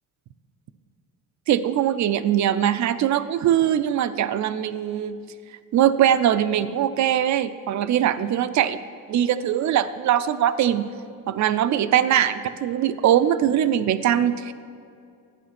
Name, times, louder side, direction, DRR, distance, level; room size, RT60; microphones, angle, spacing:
voice 1, 1.5-5.2 5.7-8.8 9.1-10.8 11.3-14.5, right 10 dB, 55° right, 13 dB, 0.6 m, -21 dB
12.0 x 9.6 x 5.9 m, 2.4 s
cardioid pair, 165°, 34 cm